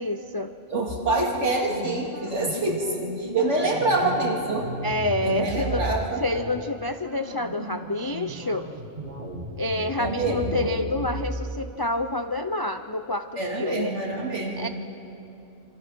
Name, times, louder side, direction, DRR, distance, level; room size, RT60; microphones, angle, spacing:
voice 1, 0.0-0.5 4.8-5.8 6.2-8.7 9.6-13.9 14.6-14.7, left 2 dB, 35° left, 8 dB, 0.3 m, -28 dB
voice 2, 0.7-4.7 5.2-6.2 10.0-10.7 13.4-14.7, right 2 dB, 60° right, -1 dB, 3.3 m, -26 dB
sound 1, 0.9-6.0 6.3-6.6 7.1-11.5, right 1 dB, 30° right, 2.5 m, -35 dB
26.5 x 25.5 x 6.0 m, 2.9 s
omnidirectional pair, 1.4 m